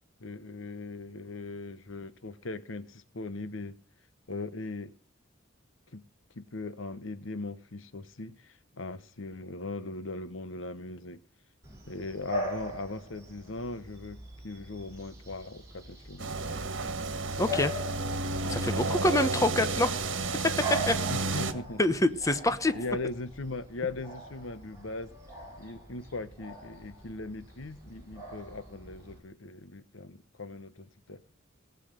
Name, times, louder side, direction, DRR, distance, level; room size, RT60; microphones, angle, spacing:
voice 1, 0.2-3.8 4.3-4.9 5.9-6.0 6.3-11.2 11.9-16.3 21.1-21.9 22.7-25.1 25.6-31.2, left 3 dB, 85° left, 1.1 m, -39 dB
Bark / Bird vocalization bird call bird song, 11.6-29.2, right 1 dB, 15° right, 7.9 m, -41 dB
sound 1, 16.2-21.5, right 3 dB, 70° right, 1.8 m, -31 dB
voice 2, 17.4-17.7 18.5-19.9 20.6-20.9 21.8-22.7, left 1 dB, 15° left, 1.0 m, -26 dB
18.5 x 8.3 x 6.7 m
head